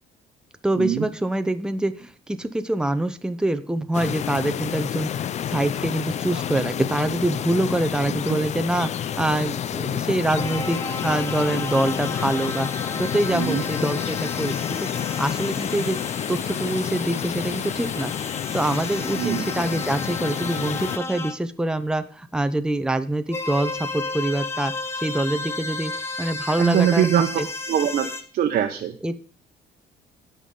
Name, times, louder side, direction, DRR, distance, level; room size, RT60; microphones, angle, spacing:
voice 1, 0.6-5.1 5.5-8.9 9.2-12.7 12.9-14.9 15.2-16.0 16.3-18.1 18.5-24.7 25.0-25.9 26.2-27.5 29.0-29.1, right 1 dB, 5° right, 9 dB, 0.8 m, -25 dB
sound 1, 3.9-21.0, left 9 dB, 40° left, 0.5 m, -29 dB
sound 2, 10.4-21.4 23.3-28.2, left 3 dB, 15° left, 1.1 m, -33 dB
voice 2, 13.3-13.6 19.1-19.5 26.6-27.3 27.7-28.1 28.3-29.0, right 10 dB, 60° right, 4 dB, 0.9 m, -22 dB
16.0 x 5.6 x 3.8 m, 0.42 s
cardioid pair, 110°, 17 cm